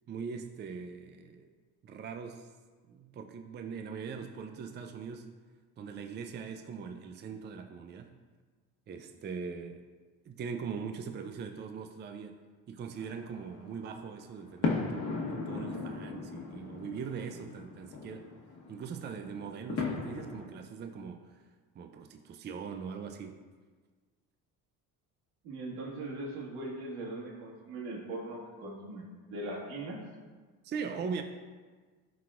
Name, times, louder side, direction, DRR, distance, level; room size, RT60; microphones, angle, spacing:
voice 1, 0.1-1.5 1.8-2.5 2.9-5.3 5.8-8.2 8.9-9.8 10.2-12.4 12.7-18.3 18.7-21.5 21.7-23.4 30.6-31.2, right 6 dB, 30° right, 6 dB, 0.4 m, -41 dB
sound 1, 12.9-20.5, left 3 dB, 45° left, 1.3 m, -37 dB
voice 2, 25.4-30.0, right 2 dB, 85° right, -3 dB, 1.8 m, -40 dB
11.0 x 4.0 x 2.4 m, 1.4 s
cardioid pair, 100°, 37 cm